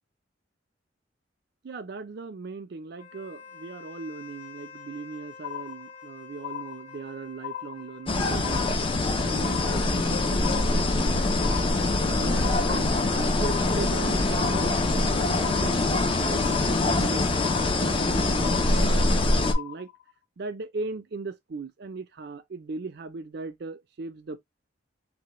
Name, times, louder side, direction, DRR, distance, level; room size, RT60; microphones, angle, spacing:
voice 1, 1.6-8.7 9.2-11.6 12.1-17.4 17.8-19.1 19.4-19.9 20.4-24.4, right 4 dB, 55° right, 0.5 m, -38 dB
Wind instrument woodwind instrument, 2.9-10.4, left 5 dB, 80° left, 1.9 m, -48 dB
sound 1, 5.4-6.1 6.4-7.1 7.4-8.1 8.4-9.1 9.4-10.1 10.4-11.1 11.4-12.1 12.4-13.1 13.4-14.1 14.4-15.1 15.4-16.1 16.4-17.1 17.4-18.1 18.4-19.1 19.4-20.1, left 11 dB, 60° left, 1.7 m, -38 dB
sound 2, 8.1-19.5, left 2 dB, 30° left, 0.4 m, -24 dB
3.3 x 2.1 x 2.9 m
head